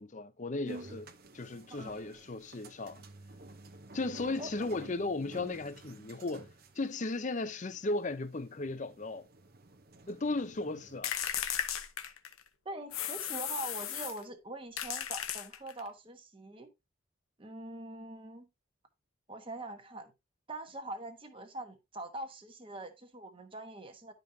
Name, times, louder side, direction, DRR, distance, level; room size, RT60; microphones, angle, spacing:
voice 1, 0.0-3.0 3.9-6.5 6.8-9.3 10.1-11.1, left 2 dB, 35° left, 0.6 m, -36 dB
sound 1, 0.6-11.0, right 2 dB, 45° right, 0.8 m, -52 dB
sound 2, 11.0-12.5 12.9-14.2 14.8-15.9, left 10 dB, 80° left, 0.8 m, -36 dB
voice 2, 12.6-16.7 17.4-18.5 19.3-20.1 20.5-24.1, right 1 dB, 25° right, 1.1 m, -43 dB
11.0 x 5.3 x 2.7 m
head